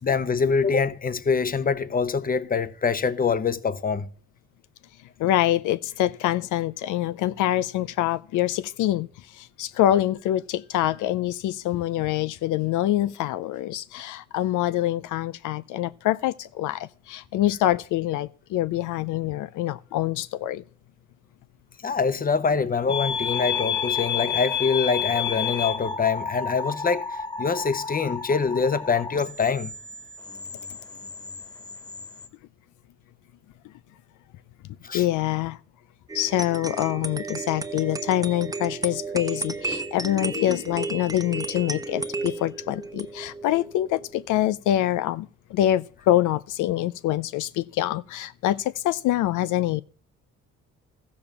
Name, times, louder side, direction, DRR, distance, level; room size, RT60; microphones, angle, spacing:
voice 1, 0.0-4.1 21.8-29.7 34.8-35.0, left 5 dB, 30° left, 0.9 m, -24 dB
voice 2, 5.2-9.1 9.4-20.6 34.9-35.6 36.1-49.8, left 13 dB, 85° left, 0.5 m, -25 dB
sound 1, 22.9-32.3, left 6 dB, 15° left, 1.6 m, -31 dB
sound 2, 36.1-44.4, right 3 dB, 10° right, 1.0 m, -33 dB
14.0 x 7.1 x 7.0 m
cardioid pair, 90°, 30 cm